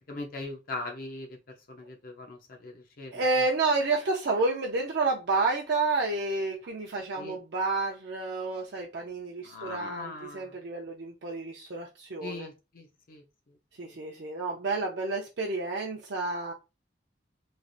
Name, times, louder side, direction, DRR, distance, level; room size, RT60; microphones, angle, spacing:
voice 1, 0.1-3.4 7.2-7.4 9.4-10.5 12.2-13.2 13.8-13.9, left 2 dB, 50° left, 0.6 m, -41 dB
voice 2, 3.1-12.5 13.8-16.5, right 3 dB, 65° right, 0.5 m, -30 dB
3.2 x 2.4 x 2.6 m
head